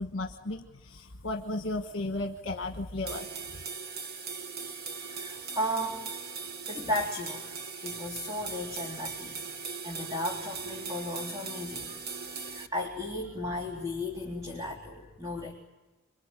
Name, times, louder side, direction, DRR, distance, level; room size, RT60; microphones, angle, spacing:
voice 1, 0.0-3.3, left 2 dB, 60° left, 4 dB, 1.4 m, -34 dB
sound 1, 3.1-12.7, right 5 dB, 45° right, 1.3 m, -39 dB
voice 2, 5.0-6.1 6.7-7.5 7.8-9.4 9.8-12.0 12.4-15.6, left 1 dB, 15° right, -1 dB, 3.6 m, -35 dB
27.5 x 23.0 x 9.0 m, 1.2 s
head